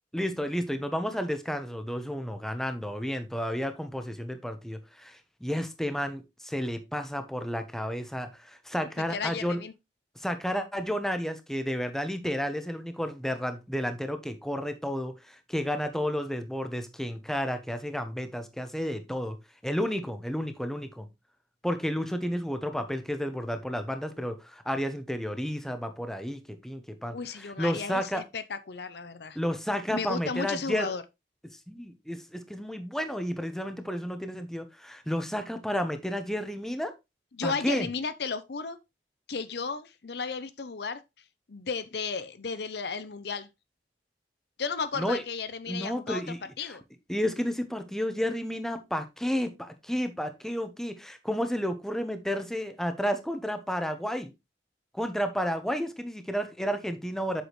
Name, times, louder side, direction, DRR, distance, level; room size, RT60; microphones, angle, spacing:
voice 1, 0.1-9.6 10.2-19.4 19.6-21.1 21.6-28.2 29.3-30.9 31.7-36.9 37.4-37.9 45.0-45.2 45.7-46.4 46.7-46.8 47.1-54.3 54.9-57.4, equal, ahead, 0.9 m, -31 dB
voice 2, 9.1-9.7 27.1-29.4 29.9-31.0 37.3-38.8 39.3-41.0 41.5-43.5 44.6-46.2 46.6-46.8, left 5 dB, 60° left, 0.6 m, -34 dB
8.1 x 6.3 x 3.1 m
head